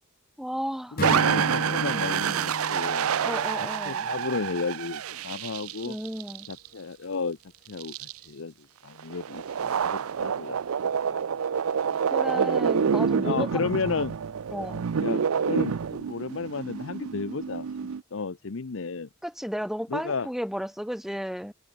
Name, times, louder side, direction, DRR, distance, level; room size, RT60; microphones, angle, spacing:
voice 1, 0.4-1.0 3.2-4.1 5.9-6.5 12.0-13.8 14.5-14.8 19.2-21.5, equal, ahead, 2.4 m, -33 dB
voice 2, 0.9-3.1 3.6-6.0 6.5-7.4 7.7-8.0 8.3-10.6 10.8-11.2 12.3-12.7 13.2-14.1 15.0-17.7 18.1-19.1 19.9-20.3, left 4 dB, 65° left, 0.7 m, -33 dB
Acoustic guitar / Strum, 1.0-4.4, left 2 dB, 45° left, 1.2 m, -34 dB
sound 1, 1.0-6.7 7.8-8.1 9.0-18.0, right 7 dB, 90° right, 0.5 m, -28 dB
head